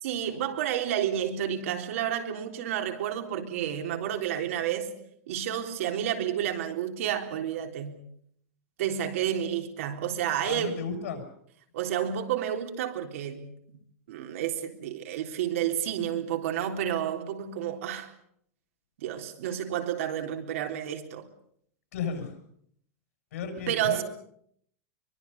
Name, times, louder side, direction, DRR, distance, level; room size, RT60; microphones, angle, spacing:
voice 1, 0.0-5.0 5.3-8.0 8.8-10.8 11.7-13.5 14.1-18.1 19.0-21.3 23.7-24.0, right 10 dB, 65° right, 3.7 m, -30 dB
voice 2, 10.4-11.2 21.9-22.4 23.3-24.0, left 6 dB, 70° left, 7.8 m, -34 dB
24.0 x 23.0 x 7.1 m
supercardioid pair, 160°, 8 cm